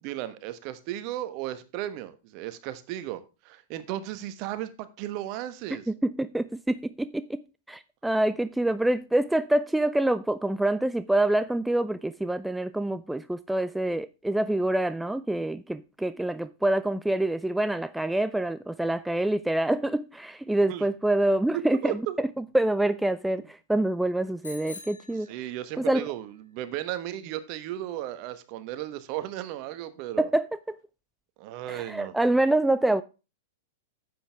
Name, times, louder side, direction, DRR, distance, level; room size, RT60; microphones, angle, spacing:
voice 1, 0.0-5.8 20.7-20.9 21.8-22.2 25.3-30.3 31.4-32.1, right 13 dB, 45° right, 1.2 m, -35 dB
voice 2, 5.9-7.4 7.7-25.3 25.8-26.1 30.2-30.8 31.7-33.0, right 1 dB, 5° right, 0.4 m, -26 dB
Bicycle bell, 24.4-26.0, left 3 dB, 80° left, 5.0 m, -46 dB
10.0 x 8.0 x 3.4 m
figure-of-eight pair, 105°, 0 cm